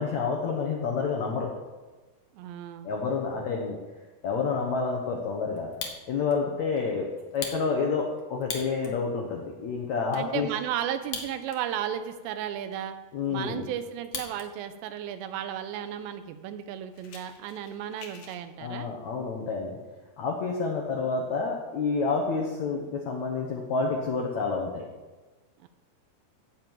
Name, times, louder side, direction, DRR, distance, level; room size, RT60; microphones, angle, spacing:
voice 1, 0.0-1.5 2.8-3.8 4.2-5.7 6.1-7.1 7.3-10.5 13.1-13.7 18.6-19.8 20.2-24.8, left 4 dB, 75° left, 0 dB, 1.6 m, -29 dB
voice 2, 2.3-2.9 10.1-12.9 13.3-18.9 25.6-25.7, right 10 dB, 85° right, 10 dB, 2.9 m, -34 dB
Fire, 5.6-6.4 6.8-6.9 7.3-9.0 9.5-9.6 9.8-10.2 11.0-11.8 12.1-12.2 12.7-14.5 14.8-15.2 15.8-15.9 16.2-16.3 16.6-18.4, left 5 dB, 55° left, 2.2 m, -40 dB
16.5 x 7.4 x 4.7 m, 1.2 s
omnidirectional pair, 5.0 m